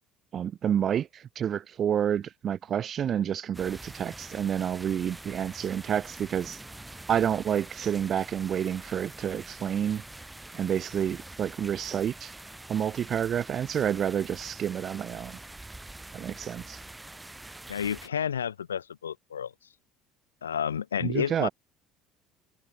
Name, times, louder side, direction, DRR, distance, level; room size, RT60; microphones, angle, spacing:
voice 1, 0.3-6.6 7.1-10.0 10.5-12.3 12.7-15.4 16.1-16.8 21.0-21.5, right 9 dB, 45° right, 2.5 m, -29 dB
sound 1, 3.5-18.1, right 2 dB, 10° right, 3.2 m, -45 dB
voice 2, 17.7-19.5 20.4-21.5, left 8 dB, 85° left, 0.5 m, -30 dB
figure-of-eight pair, 60°, 0 cm